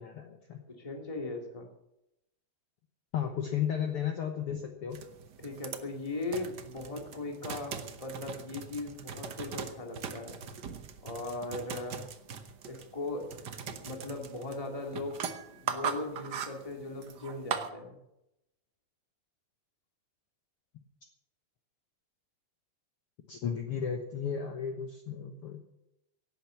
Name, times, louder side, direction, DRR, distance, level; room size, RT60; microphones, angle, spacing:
voice 1, 0.0-0.6 3.1-5.0 23.3-25.6, left 8 dB, 60° left, 4 dB, 1.7 m, -34 dB
voice 2, 0.7-1.7 5.4-10.4 11.0-12.1 12.7-18.0, left 2 dB, 10° left, 2 dB, 2.0 m, -39 dB
sound 1, 4.9-17.7, right 6 dB, 85° right, 0.9 m, -40 dB
17.0 x 9.1 x 6.9 m, 0.87 s
omnidirectional pair, 3.5 m